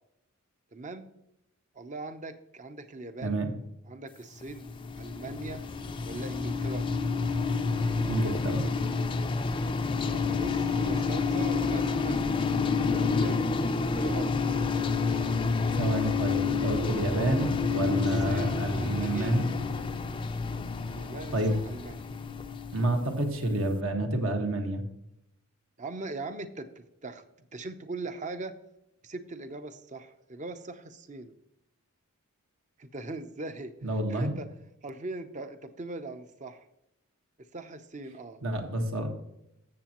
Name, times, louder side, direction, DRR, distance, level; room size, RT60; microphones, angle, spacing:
voice 1, 0.7-1.1 1.7-3.4 3.9-4.7 5.0-5.6 6.0-6.9 10.1-12.2 12.9-14.4 18.3-19.4 20.9-22.1 25.8-27.2 27.5-28.6 29.0-31.3 32.8-33.7 34.1-34.5 34.8-36.7 37.5-38.4, right 2 dB, 35° right, 9 dB, 0.7 m, -40 dB
sound 1, 4.4-23.4, left 4 dB, 25° left, 0.4 m, -29 dB
voice 2, 8.1-8.6 15.7-19.6 21.3-21.6 22.7-24.8 33.8-34.4 38.4-39.1, right 1 dB, 65° right, 4 dB, 1.5 m, -28 dB
14.0 x 7.3 x 3.0 m, 0.84 s
head